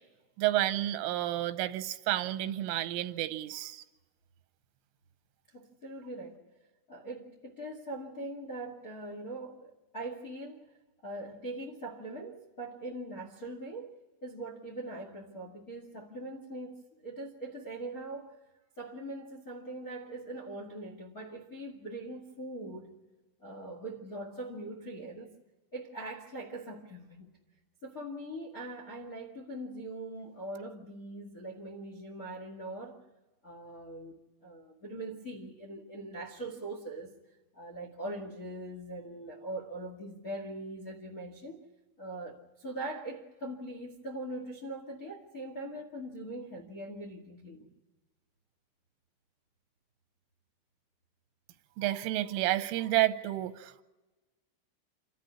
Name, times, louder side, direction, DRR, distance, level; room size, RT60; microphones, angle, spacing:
voice 1, 0.4-3.8 51.8-53.8, right 14 dB, 90° right, 3.5 m, -30 dB
voice 2, 5.5-6.4 6.9-10.7 11.0-14.0 14.2-18.4 18.8-23.0 23.4-25.3 25.7-27.3 27.8-33.0 33.4-37.1 37.5-41.6 42.0-47.7, right 1 dB, 80° left, 0.8 m, -42 dB
28.5 x 13.0 x 9.7 m
omnidirectional pair, 5.5 m